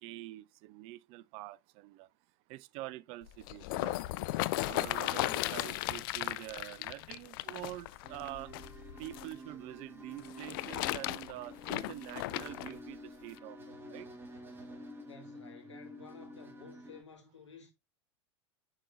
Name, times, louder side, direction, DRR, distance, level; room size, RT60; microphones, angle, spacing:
voice 1, 0.0-2.1 2.5-4.0 4.7-8.5 9.0-14.1, right 17 dB, 40° right, 0.4 m, -46 dB
sound 1, 3.2-9.3 10.2-12.7 13.4-13.5, left 18 dB, 50° left, 0.4 m, -36 dB
sound 2, 8.0-17.0, equal, 15° right, 1.6 m, -50 dB
voice 2, 15.0-17.7, left 5 dB, 80° left, 2.1 m, -53 dB
9.8 x 4.1 x 2.4 m
figure-of-eight pair, 90°, 15 cm